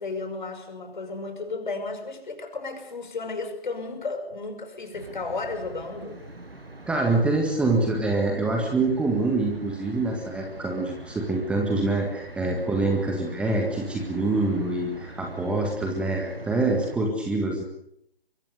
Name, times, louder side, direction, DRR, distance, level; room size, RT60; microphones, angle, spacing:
voice 1, 0.0-6.2, left 3 dB, 50° left, 7 dB, 5.7 m, -33 dB
sound 1, 4.9-17.0, right 2 dB, 75° right, 7.1 m, -43 dB
voice 2, 6.9-17.6, right 2 dB, 5° right, 1 dB, 1.9 m, -25 dB
25.0 x 23.5 x 6.8 m, 0.73 s
figure-of-eight pair, 140°, 30 cm